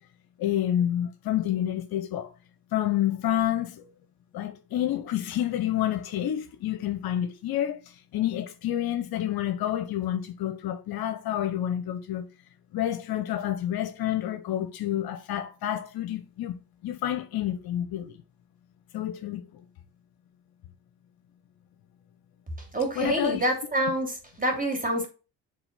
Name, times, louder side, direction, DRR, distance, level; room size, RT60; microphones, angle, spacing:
voice 1, 0.4-2.3 2.7-3.9 4.3-12.3 12.7-16.5 16.8-18.2 18.9-19.6 23.0-23.5, left 11 dB, 55° left, 0.8 m, -29 dB
voice 2, 22.7-24.1 24.4-25.1, right 1 dB, 20° right, 2.9 m, -26 dB
7.1 x 3.4 x 4.0 m
hypercardioid pair, 60°, 43 cm